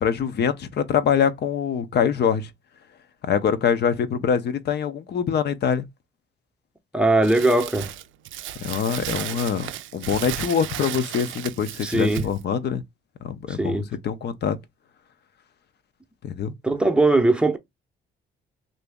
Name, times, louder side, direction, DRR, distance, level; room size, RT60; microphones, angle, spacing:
voice 1, 0.0-2.5 3.2-5.9 8.6-12.8 13.2-14.6 16.2-16.5, left 7 dB, 55° left, 0.6 m, -24 dB
voice 2, 6.9-7.9 11.8-12.2 13.5-13.9 16.6-17.6, right 2 dB, 5° right, 0.7 m, -20 dB
Crumpling crinkling, 7.2-12.4, right 12 dB, 75° right, 0.4 m, -34 dB
2.8 x 2.6 x 3.4 m
cardioid pair, 90°, 20 cm